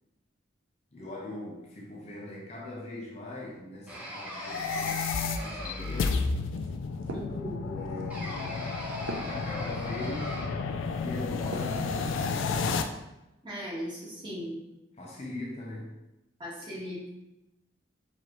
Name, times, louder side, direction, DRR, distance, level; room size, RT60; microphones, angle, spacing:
voice 1, 0.9-6.3 7.6-8.7 9.3-10.5 11.0-12.9 15.0-16.0, left 1 dB, 35° left, -3 dB, 0.5 m, -41 dB
sound 1, 3.9-6.4 8.1-10.7, right 1 dB, 5° right, 0.6 m, -41 dB
sound 2, 4.3-12.8, left 4 dB, 80° left, 0.3 m, -32 dB
sound 3, 5.4-11.9 12.4-13.0, right 2 dB, 90° right, 0.5 m, -45 dB
voice 2, 7.1-7.6 13.4-14.6 16.4-17.1, equal, 25° right, -8 dB, 1.2 m, -38 dB
4.7 x 2.7 x 2.9 m, 0.95 s
head